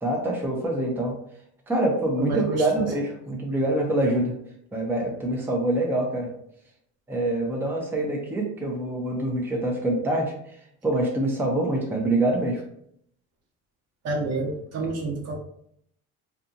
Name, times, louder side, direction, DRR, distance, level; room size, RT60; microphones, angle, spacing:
voice 1, 0.0-1.2 1.7-4.4 4.7-6.3 7.1-10.3 10.8-12.6, right 1 dB, 5° right, 0 dB, 0.5 m, -25 dB
voice 2, 2.2-2.9 14.0-15.4, right 2 dB, 55° right, 0 dB, 0.8 m, -29 dB
2.6 x 2.3 x 2.6 m, 0.70 s
cardioid pair, 110°, 31 cm